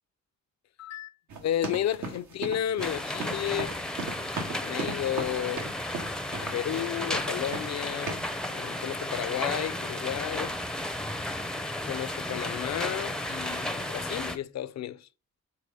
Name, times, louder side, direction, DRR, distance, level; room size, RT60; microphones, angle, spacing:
voice 1, 0.8-1.1 1.4-3.8 4.6-5.7 6.4-8.2 8.5-10.6 11.9-15.1, left 11 dB, 65° left, 0.5 m, -32 dB
sound 1, 1.3-6.9 7.1-7.8 8.1-8.4, right 3 dB, 80° right, 1.6 m, -37 dB
sound 2, 2.8-14.4, left 1 dB, 5° left, 0.5 m, -33 dB
4.8 x 4.4 x 5.4 m
wide cardioid pair, 125°, 29 cm